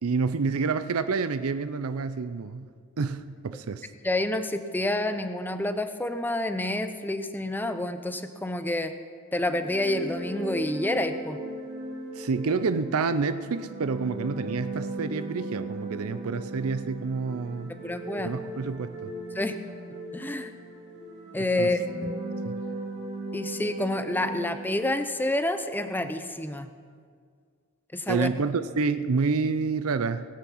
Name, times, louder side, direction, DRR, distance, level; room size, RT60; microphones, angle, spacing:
voice 1, 0.0-2.7 3.0-3.9 12.1-17.8 18.2-19.1 21.6-21.7 22.4-22.6 28.1-30.3, right 4 dB, 75° right, 12 dB, 0.5 m, -28 dB
voice 2, 4.0-8.9 9.3-11.4 17.8-18.4 19.3-19.5 20.1-20.5 21.3-22.2 23.3-26.7 27.9-28.3, left 1 dB, 10° left, 9 dB, 0.6 m, -28 dB
sound 1, 9.4-25.1, right 1 dB, 50° right, 2.4 m, -38 dB
20.0 x 8.5 x 5.7 m, 2.1 s
head